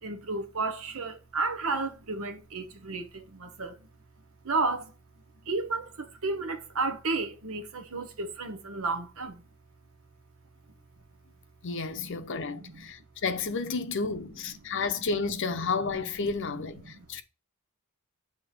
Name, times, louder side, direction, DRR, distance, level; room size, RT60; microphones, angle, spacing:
voice 1, 0.0-3.9 4.4-4.9 5.4-9.4 11.9-12.1 12.5-12.8 13.8-13.9 14.7-14.8, right 3 dB, 70° right, 0.9 m, -32 dB
voice 2, 11.6-17.2, left 4 dB, 55° left, 0.7 m, -31 dB
7.8 x 2.9 x 4.9 m
head